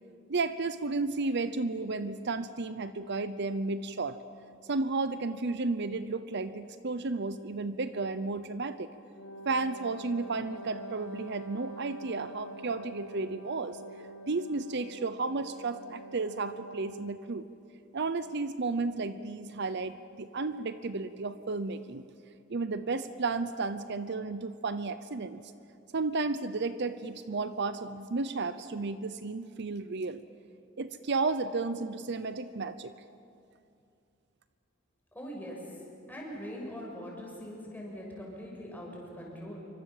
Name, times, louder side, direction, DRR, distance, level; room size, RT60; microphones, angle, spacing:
voice 1, 0.3-4.2 4.7-8.9 9.5-13.8 14.3-17.4 17.9-22.0 22.5-25.4 25.9-30.2 30.8-32.9, right 3 dB, 60° right, 12 dB, 0.8 m, -33 dB
Wind instrument woodwind instrument, 9.1-17.3, right 1 dB, 85° left, 1.8 m, -46 dB
voice 2, 35.2-35.6 36.1-39.7, equal, 10° left, -2 dB, 6.8 m, -42 dB
27.5 x 24.5 x 7.4 m, 2.5 s
head